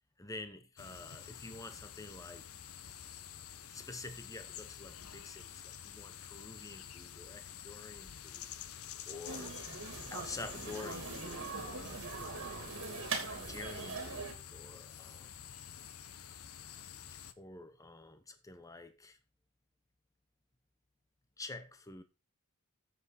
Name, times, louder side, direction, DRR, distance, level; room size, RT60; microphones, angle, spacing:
voice 1, 0.2-2.4 3.7-9.6 10.1-12.0 12.4-15.3 17.4-19.2 21.4-22.0, left 3 dB, 15° left, 0.9 m, -49 dB
sound 1, 0.8-17.3, left 9 dB, 75° left, 0.8 m, -49 dB
sound 2, 9.3-14.3, right 4 dB, 60° right, 3.0 m, -41 dB
10.0 x 7.9 x 4.2 m
head